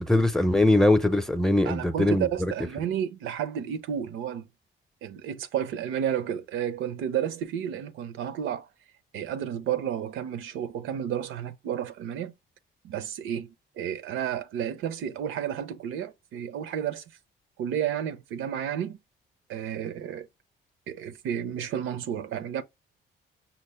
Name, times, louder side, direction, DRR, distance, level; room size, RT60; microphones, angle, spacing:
voice 1, 0.0-2.5, left 1 dB, ahead, 0.6 m, -22 dB
voice 2, 1.6-4.5 5.0-8.7 9.1-12.3 12.8-17.0 17.6-19.0 19.5-20.3 20.9-22.6, right 9 dB, 85° right, 0.6 m, -31 dB
5.7 x 2.1 x 3.1 m
cardioid pair, 90°, 20 cm